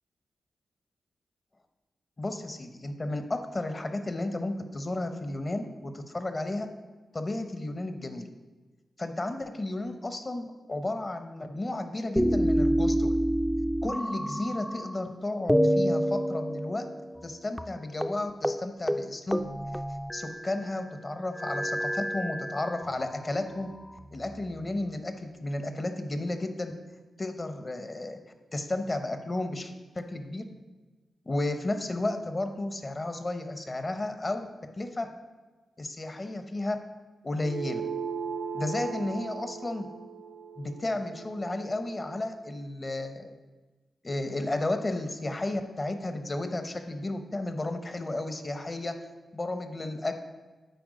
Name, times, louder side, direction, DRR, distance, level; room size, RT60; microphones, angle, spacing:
voice 1, 2.2-6.7 7.1-8.3 9.0-13.1 13.8-16.8 17.2-19.4 20.1-23.7 24.1-26.7 27.2-28.2 28.5-30.4 31.2-34.5 34.8-35.1 35.8-36.8 37.2-37.8 38.5-39.9 40.6-43.4 44.0-49.0 49.3-50.1, left 2 dB, 35° left, 7 dB, 0.8 m, -33 dB
sound 1, 12.2-15.1 15.5-17.3 17.6-17.7 18.0-18.2 18.4-18.6 18.9-20.6 21.4-22.9 23.7-24.6, equal, 5° left, 0.3 m, -28 dB
sound 2, 37.4-42.2, right 6 dB, 80° right, 0.6 m, -38 dB
7.9 x 4.5 x 5.0 m, 1.3 s
cardioid pair, 65°, 0 cm